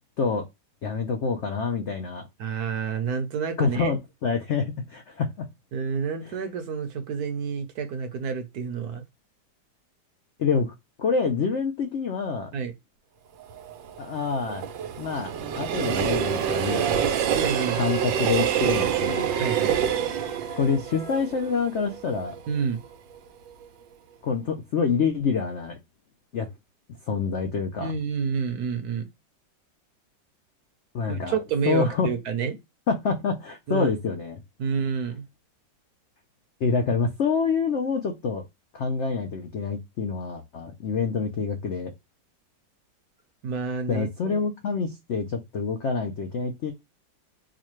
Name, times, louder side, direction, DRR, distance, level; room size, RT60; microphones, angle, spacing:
voice 1, 0.8-2.3 3.6-5.5 10.4-12.5 14.0-14.6 15.0-17.0 17.8-19.3 20.6-22.4 24.2-25.8 26.3-26.5 27.1-27.9 30.9-31.4 31.7-32.1 32.9-34.4 36.6-38.4 38.7-41.9 43.9-46.7, left 5 dB, 75° left, 0.6 m, -27 dB
voice 2, 2.4-3.9 5.7-9.0 12.5-12.7 17.3-17.9 19.4-19.8 22.5-22.8 27.8-29.1 31.1-32.6 33.7-33.9 34.6-35.2 43.4-44.4, right 6 dB, 65° right, 1.1 m, -29 dB
Train, 13.4-22.5 22.9-23.0, right 9 dB, 90° right, 1.4 m, -27 dB
Wind instrument woodwind instrument, 15.4-21.7, left 1 dB, 50° left, 0.9 m, -42 dB
4.7 x 2.2 x 3.0 m
omnidirectional pair, 2.0 m